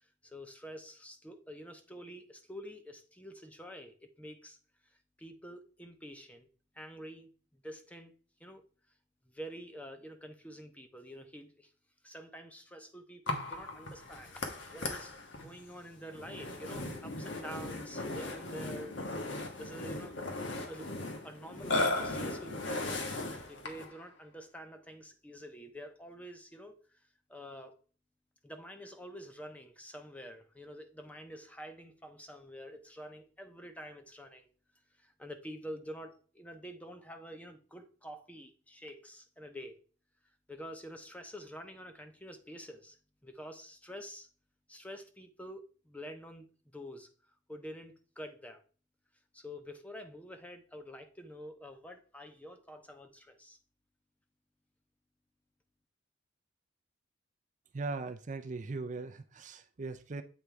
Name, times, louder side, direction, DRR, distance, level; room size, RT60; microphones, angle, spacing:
voice 1, 0.0-4.6 4.8-6.5 6.7-8.1 8.4-8.6 9.3-11.7 12.0-14.5 14.7-19.0 19.6-20.2 20.6-20.9 21.2-23.1 23.5-27.0 27.3-27.8 28.4-34.5 35.0-39.8 40.5-43.0 43.2-44.3 44.7-47.1 47.5-48.6 49.3-53.6, equal, 10° left, 0.8 m, -48 dB
Burping eructation, 13.3-24.0, left 2 dB, 75° left, 1.4 m, -37 dB
voice 2, 57.7-60.2, right 3 dB, 40° right, 0.5 m, -39 dB
8.1 x 3.6 x 4.5 m
head